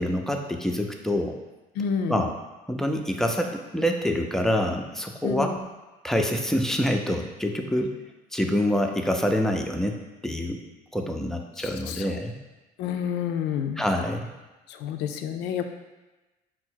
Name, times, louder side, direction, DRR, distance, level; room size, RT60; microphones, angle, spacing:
voice 1, 0.0-1.4 2.1-2.3 2.7-5.5 6.0-7.9 8.3-10.6 10.9-12.4 13.8-14.3, equal, 5° left, 3 dB, 0.4 m, -26 dB
voice 2, 1.8-2.3 5.2-5.6 11.6-12.2 12.8-13.8 14.7-15.7, left 7 dB, 85° left, 7 dB, 0.4 m, -29 dB
4.5 x 2.0 x 4.4 m, 1.1 s
cardioid pair, 110°, 17 cm